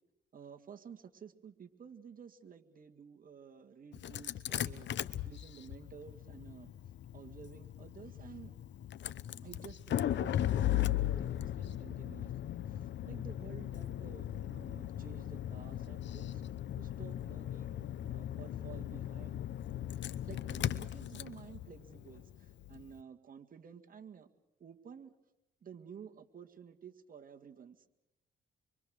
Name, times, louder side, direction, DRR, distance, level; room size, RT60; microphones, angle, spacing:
voice 1, 0.3-6.7 7.1-8.5 9.4-16.4 16.8-19.4 20.2-24.3 24.6-25.1 25.6-27.8, right 7 dB, 45° right, 4 dB, 2.0 m, -53 dB
Engine starting, 3.9-22.9, left 12 dB, 65° left, 0.9 m, -38 dB
25.0 x 24.5 x 6.5 m, 0.91 s
cardioid pair, 90°, 20 cm